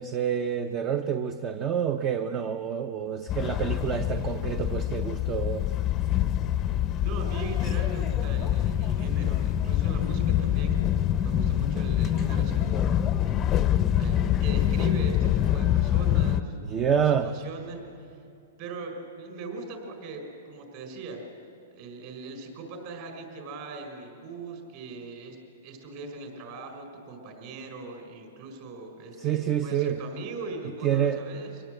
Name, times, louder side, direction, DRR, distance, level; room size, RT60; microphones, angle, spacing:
voice 1, 0.0-5.7 16.6-17.3 29.2-30.0 30.8-31.2, right 8 dB, 25° right, 9 dB, 0.7 m, -27 dB
sound 1, 3.3-16.4, left 11 dB, 25° left, 0.7 m, -25 dB
voice 2, 7.0-10.8 11.2-13.0 14.0-17.8 18.6-21.2 21.7-25.4 25.6-31.6, right 3 dB, 45° right, 4 dB, 5.1 m, -40 dB
24.5 x 19.0 x 8.0 m, 2.5 s
hypercardioid pair, 150°, 0 cm